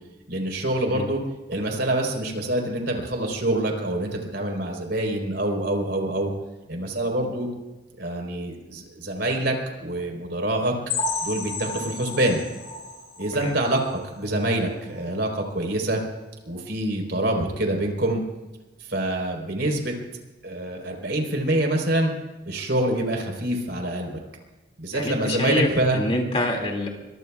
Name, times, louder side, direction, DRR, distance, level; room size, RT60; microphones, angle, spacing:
voice 1, 0.3-1.2 1.5-6.3 6.7-7.5 8.0-10.7 11.2-12.4 13.2-16.0 16.5-18.2 18.9-19.9 20.4-22.1 22.5-24.2 24.8-26.0, right 1 dB, 60° right, 2 dB, 4.1 m, -26 dB
sound 1, 10.9-14.5 14.9-15.1 15.4-15.5 16.0-16.1, left 3 dB, 55° left, 5.0 m, -33 dB
voice 2, 24.9-26.9, left 1 dB, 30° left, 2 dB, 2.4 m, -26 dB
25.0 x 24.0 x 2.4 m, 1.1 s
head